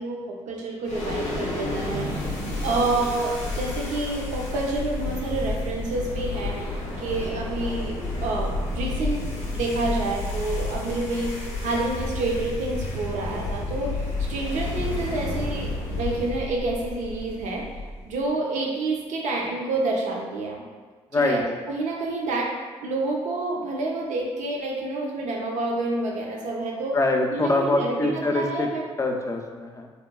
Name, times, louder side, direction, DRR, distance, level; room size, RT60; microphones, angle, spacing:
voice 1, 0.0-2.3 2.6-11.3 11.6-13.9 14.3-17.6 18.1-20.6 21.1-22.5 22.8-27.0 27.3-28.8, right 2 dB, 75° right, -1 dB, 0.5 m, -28 dB
sound 1, 0.8-18.2, left 2 dB, 80° left, 0.5 m, -31 dB
voice 2, 26.9-28.7 29.0-29.9, left 2 dB, 25° left, 3 dB, 0.4 m, -24 dB
2.9 x 2.2 x 2.2 m, 1.4 s
supercardioid pair, 50°, 13 cm